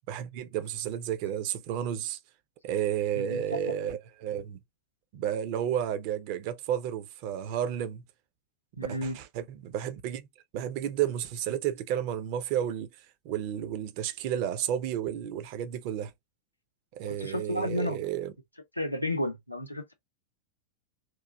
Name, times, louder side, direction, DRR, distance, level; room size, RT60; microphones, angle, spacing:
voice 1, 0.1-2.2 2.6-4.6 5.1-8.0 8.8-10.3 10.5-12.9 13.2-16.1 17.0-18.3, right 10 dB, 45° right, 0.5 m, -32 dB
voice 2, 3.1-3.6 8.8-9.2 17.1-18.0 18.8-19.9, left 1 dB, 85° left, 0.6 m, -32 dB
3.0 x 2.4 x 2.2 m
figure-of-eight pair, 90°, 0 cm